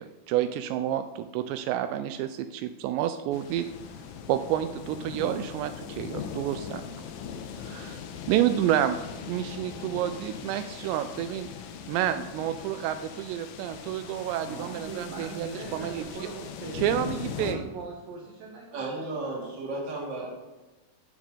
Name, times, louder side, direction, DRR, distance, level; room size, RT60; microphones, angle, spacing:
voice 1, 0.0-3.7 4.3-6.8 7.6-8.0 8.3-9.0 9.2-11.5 11.9-16.1 16.7-17.7, right 11 dB, 85° right, 10 dB, 2.7 m, -29 dB
sound 1, 3.3-17.5, left 7 dB, 80° left, 2.0 m, -40 dB
voice 2, 14.3-19.4, right 4 dB, 65° right, -2 dB, 2.5 m, -41 dB
voice 3, 18.7-20.3, right 2 dB, 30° right, -3 dB, 2.6 m, -33 dB
15.5 x 7.2 x 3.8 m, 1.1 s
omnidirectional pair, 5.1 m